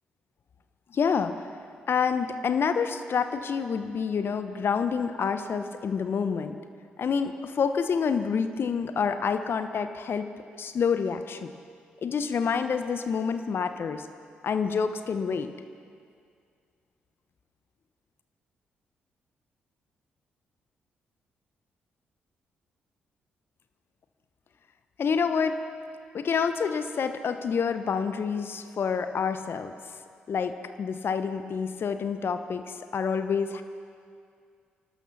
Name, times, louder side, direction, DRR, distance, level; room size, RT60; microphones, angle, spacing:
voice 1, 0.9-1.3 1.9-6.5 7.0-10.3 10.6-11.5 12.0-14.1 14.4-15.5 25.0-25.6 26.1-29.7 30.3-33.6, left 6 dB, 55° left, 9 dB, 1.0 m, -28 dB
25.0 x 12.5 x 4.1 m, 2.2 s
hypercardioid pair, 40°, 5 cm